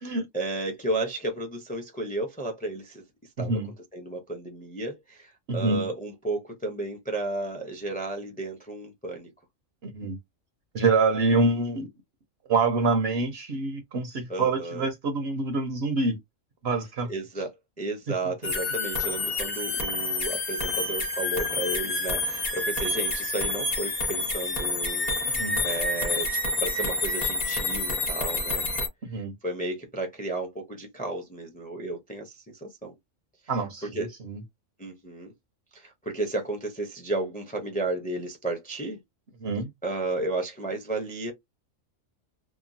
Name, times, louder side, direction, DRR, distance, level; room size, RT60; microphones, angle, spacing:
voice 1, 0.0-3.0 3.4-3.6 3.9-9.3 14.3-14.9 17.1-17.5 17.8-28.7 29.1-32.9 33.9-34.1 34.8-35.3 35.7-39.0 39.8-41.3, right 2 dB, 10° left, 0.5 m, -33 dB
voice 2, 3.4-3.7 5.5-5.9 9.8-10.2 10.7-11.9 12.5-16.2 16.6-17.1 18.2-18.5 25.2-25.6 29.0-29.3 33.5-34.4 39.4-39.7, right 3 dB, 60° right, 0.8 m, -26 dB
sound 1, 18.4-28.9, left 2 dB, 35° left, 0.9 m, -28 dB
2.9 x 2.2 x 2.6 m
omnidirectional pair, 1.3 m